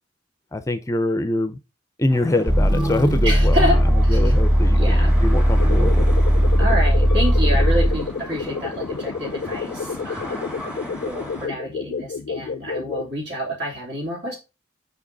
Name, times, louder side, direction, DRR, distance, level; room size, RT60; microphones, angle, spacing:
voice 1, 0.5-1.6 2.0-3.8 4.1-6.1, left 1 dB, 15° left, 0.4 m, -24 dB
sound 1, 2.1-11.5, equal, 5° right, 1.3 m, -37 dB
sound 2, 2.5-8.1, equal, 25° right, 0.6 m, -17 dB
voice 2, 3.2-3.8 4.0-4.2 4.7-5.1 6.6-10.6 11.0-14.4, equal, 65° right, 2.8 m, -28 dB
sound 3, 5.5-13.1, left 5 dB, 75° left, 0.4 m, -31 dB
5.3 x 5.0 x 3.9 m
head